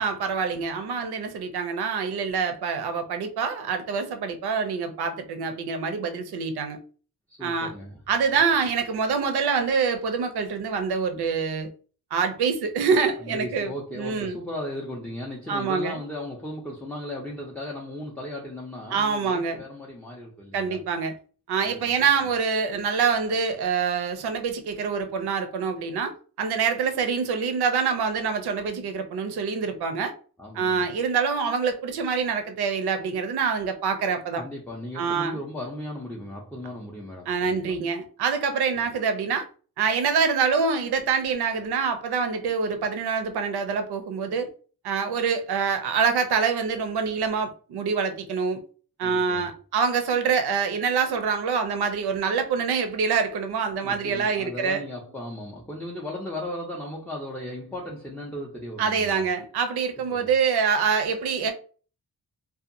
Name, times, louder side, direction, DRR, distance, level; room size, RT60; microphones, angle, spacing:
voice 1, 0.0-6.8 7.4-7.7 8.1-11.7 12.1-14.4 15.5-16.0 18.9-19.6 20.5-21.1 21.5-30.1 30.5-34.4 35.0-35.4 37.3-39.5 39.8-44.5 44.8-48.6 49.0-54.8 58.8-61.5, right 5 dB, 75° right, 0.6 m, -25 dB
voice 2, 7.3-8.0 13.2-20.8 21.6-21.9 30.4-30.9 34.4-37.8 49.0-49.5 53.8-59.2 60.1-60.3, left 1 dB, 5° left, 0.3 m, -36 dB
2.7 x 2.3 x 2.5 m
wide cardioid pair, 145°, 39 cm